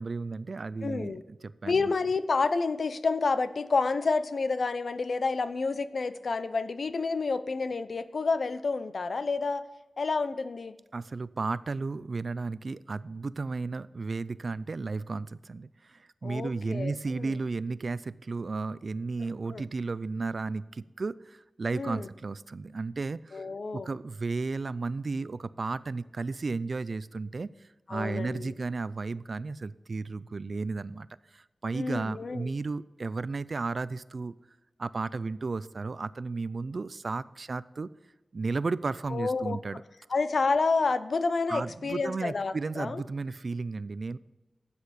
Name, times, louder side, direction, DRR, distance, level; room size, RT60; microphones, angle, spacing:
voice 1, 0.0-1.9 10.9-23.4 23.7-27.5 27.9-31.1 31.3-34.3 34.8-37.9 38.3-39.8 41.5-44.2, right 3 dB, 50° right, 17 dB, 0.4 m, -34 dB
voice 2, 0.8-1.2 1.6-9.7 10.0-10.8 16.2-17.4 19.5-19.6 21.7-22.1 23.3-23.9 27.9-28.5 31.7-32.5 39.1-39.6 40.1-43.0, left 4 dB, 60° left, 12 dB, 0.6 m, -29 dB
12.5 x 8.6 x 4.2 m, 1.1 s
wide cardioid pair, 115°, 0 cm